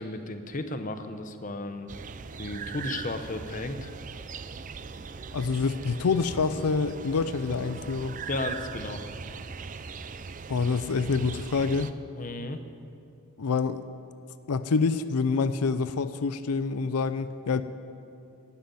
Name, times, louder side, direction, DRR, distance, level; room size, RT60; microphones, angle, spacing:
voice 1, 0.0-1.9 2.4-3.9 8.3-9.0 12.2-12.6, left 2 dB, 35° left, 9 dB, 0.8 m, -34 dB
sound 1, 1.9-11.9, right 5 dB, 35° right, 0.4 m, -40 dB
voice 2, 5.3-8.2 10.5-11.9 13.4-13.8 14.5-17.6, left 4 dB, 90° left, 12 dB, 0.5 m, -27 dB
11.5 x 11.0 x 9.4 m, 2.7 s
head